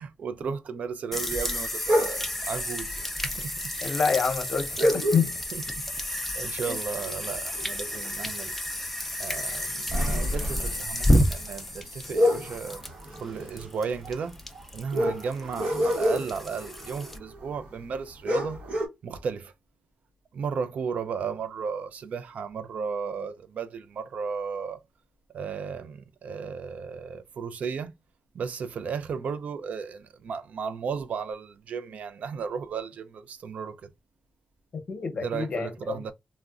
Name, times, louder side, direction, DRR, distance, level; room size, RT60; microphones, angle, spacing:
voice 1, 0.0-3.7 5.5-8.5 9.2-12.8 13.2-14.4 14.7-18.6 19.0-19.5 20.3-24.8 25.3-27.9 28.3-33.9 35.2-36.1, right 6 dB, 85° right, 0.3 m, -34 dB
sound 1, 1.1-17.2, left 1 dB, 5° left, 0.4 m, -31 dB
sound 2, 1.9-2.4 3.4-3.5 3.8-3.9 4.8-5.7 6.1-6.3 6.7-8.3 8.7-8.9 9.3-17.7 18.0-18.1 18.3-18.9, equal, 65° right, 0.9 m, -29 dB
voice 2, 3.8-5.3 6.7-6.8 34.9-36.0, left 5 dB, 50° left, 0.7 m, -27 dB
3.5 x 2.1 x 2.4 m
wide cardioid pair, 170°, 2 cm